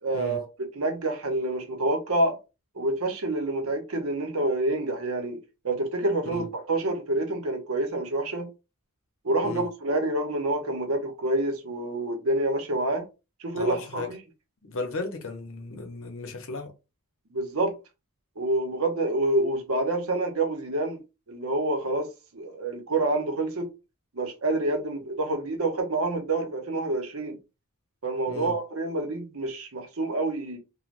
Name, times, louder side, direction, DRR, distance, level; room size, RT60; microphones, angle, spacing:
voice 1, 0.0-0.5 0.7-2.4 2.7-5.4 5.6-8.5 9.2-13.1 13.4-14.2 17.3-17.7 18.4-21.0 21.3-22.1 22.3-23.7 24.1-27.4 28.0-30.6, right 2 dB, 70° right, 0.8 m, -27 dB
voice 2, 13.5-14.1 14.6-16.7 28.3-28.5, left 3 dB, 60° left, 0.7 m, -35 dB
3.2 x 2.1 x 2.5 m
head